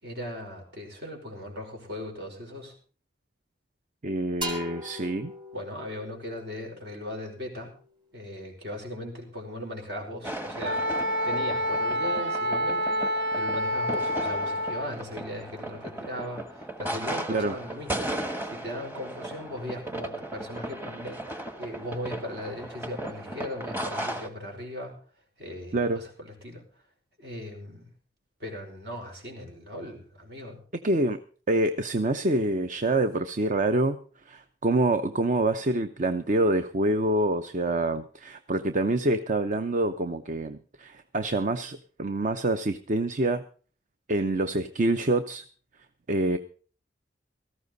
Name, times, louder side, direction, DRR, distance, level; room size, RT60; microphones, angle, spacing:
voice 1, 0.0-2.7 5.5-7.7 8.1-10.9 11.2-13.0 13.3-18.1 18.4-24.9 25.4-26.6 27.2-27.8 28.4-30.6, left 1 dB, 65° right, 2 dB, 5.3 m, -38 dB
voice 2, 4.0-5.3 17.3-17.5 25.7-26.0 30.8-31.2 31.5-34.0 34.3-43.4 44.1-45.4 46.1-46.4, right 2 dB, 45° right, 9 dB, 0.7 m, -26 dB
sound 1, 4.4-8.0, equal, 30° right, 3.2 m, -40 dB
sound 2, 10.2-24.3, right 1 dB, 10° right, 1.3 m, -36 dB
Wind instrument woodwind instrument, 10.6-14.9, equal, 90° right, 1.2 m, -28 dB
17.5 x 14.5 x 4.0 m, 0.41 s
head